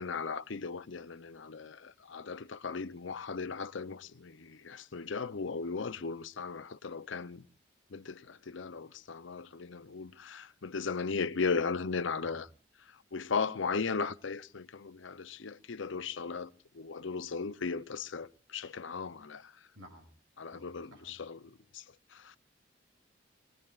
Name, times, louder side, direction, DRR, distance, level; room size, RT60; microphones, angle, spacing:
voice 1, 0.0-7.5 7.9-12.5 12.8-19.7 20.4-22.4, left 5 dB, 75° left, 0.7 m, -37 dB
voice 2, 19.8-20.1 20.5-21.2, equal, 80° right, 7.0 m, -53 dB
24.5 x 20.0 x 2.5 m
head